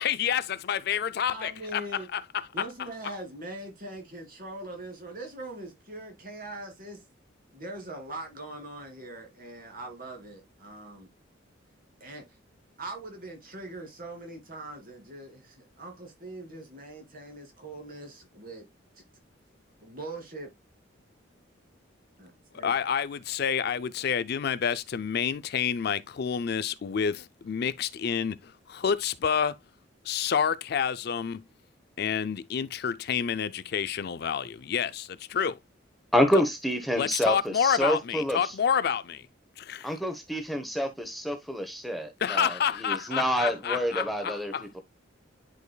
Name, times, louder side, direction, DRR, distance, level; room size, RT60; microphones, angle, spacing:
voice 1, 0.0-2.7 22.5-29.6 30.0-31.4 32.0-35.6 37.0-39.3 39.6-40.0 42.2-44.7, left 7 dB, 55° left, 0.4 m, -29 dB
voice 2, 1.3-2.1 2.5-7.0 7.5-11.1 12.0-12.2 12.8-18.7 19.8-20.5 22.2-22.7, right 2 dB, 45° right, 2.6 m, -41 dB
voice 3, 36.1-38.5 39.8-42.5 42.8-44.8, equal, ahead, 0.9 m, -28 dB
10.5 x 4.9 x 2.2 m
head